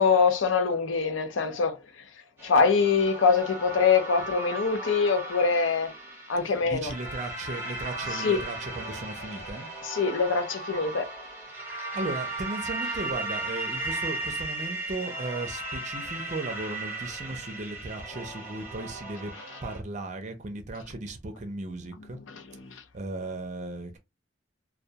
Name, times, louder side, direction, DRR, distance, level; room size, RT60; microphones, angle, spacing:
voice 1, 0.0-2.0 2.4-5.9 6.3-6.9 8.1-8.4 9.8-11.1 11.7-11.8 22.3-22.8, left 5 dB, 90° left, 0.6 m, -24 dB
sound 1, 2.4-19.8, right 2 dB, 15° right, 0.8 m, -36 dB
voice 2, 6.6-9.7 11.9-19.3 19.6-22.2 22.9-24.0, right 2 dB, 40° right, 0.5 m, -36 dB
2.2 x 2.2 x 2.7 m
head